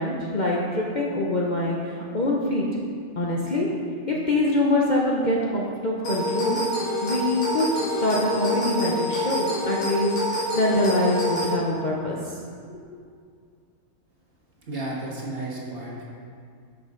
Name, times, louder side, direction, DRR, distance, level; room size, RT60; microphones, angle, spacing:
voice 1, 0.0-2.6 3.2-3.7 4.1-6.6 7.0-12.2 12.7-12.8, left 1 dB, 40° left, -4 dB, 0.8 m, -24 dB
sound 1, 6.0-11.5, equal, 75° left, 2.4 m, -27 dB
voice 2, 14.6-16.0, right 2 dB, 45° right, -4 dB, 1.7 m, -33 dB
10.5 x 6.1 x 3.8 m, 2.2 s
omnidirectional pair, 1.4 m